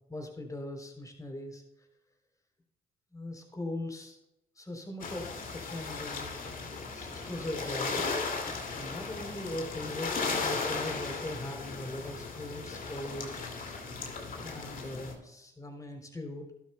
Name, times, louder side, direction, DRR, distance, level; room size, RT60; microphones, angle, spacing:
voice 1, 0.1-1.6 3.1-4.2 4.6-6.4 6.9-13.9 14.4-16.5, left 1 dB, 20° left, 3 dB, 3.5 m, -40 dB
sound 1, 5.0-15.1, left 4 dB, 50° left, 2.4 m, -36 dB
12.5 x 12.0 x 2.2 m, 0.90 s
hypercardioid pair, 50°, 18 cm